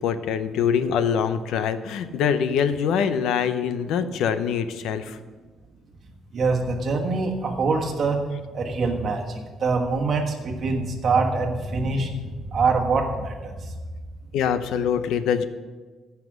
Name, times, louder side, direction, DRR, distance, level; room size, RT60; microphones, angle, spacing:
voice 1, 0.0-5.2 14.3-15.4, left 7 dB, 85° left, 11 dB, 0.7 m, -24 dB
voice 2, 6.3-8.3 8.5-13.7, right 4 dB, 40° right, 2 dB, 1.4 m, -24 dB
15.0 x 5.9 x 6.1 m, 1.4 s
cardioid pair, 175°, 0 cm